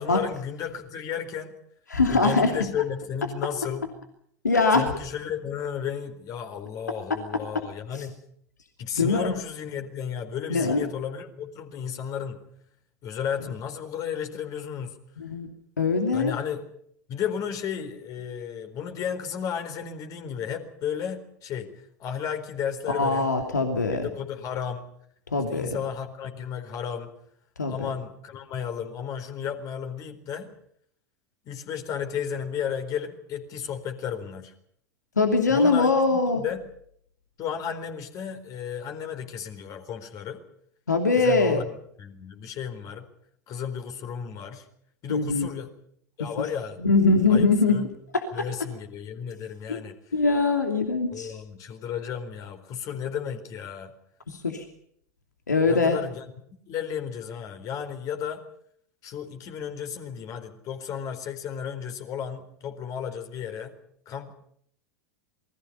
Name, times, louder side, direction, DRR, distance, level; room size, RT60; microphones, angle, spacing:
voice 1, 0.0-1.5 2.1-3.9 4.7-8.2 8.8-12.4 13.0-15.0 16.1-16.7 17.1-23.4 23.8-24.9 25.5-27.1 27.7-30.5 31.4-34.5 35.5-36.6 37.4-40.4 41.2-41.6 42.0-43.1 43.5-44.7 45.0-45.7 46.2-46.8 47.3-47.9 48.3-50.2 51.1-53.9 55.7-56.3 56.7-58.4 59.0-63.7 64.1-64.3, left 8 dB, 40° left, 7 dB, 4.2 m, -33 dB
voice 2, 1.9-2.5 4.4-4.9 9.0-9.3 10.5-10.8 15.2-15.5 15.8-16.3 22.9-24.1 25.3-25.7 27.6-27.7 35.2-36.4 40.9-41.6 45.1-45.5 46.8-47.8 49.7-49.8 50.1-51.3 54.3-54.6 55.5-56.0, left 3 dB, 80° left, 5 dB, 2.8 m, -22 dB
28.0 x 21.5 x 5.5 m, 0.68 s
figure-of-eight pair, 85°, 9 cm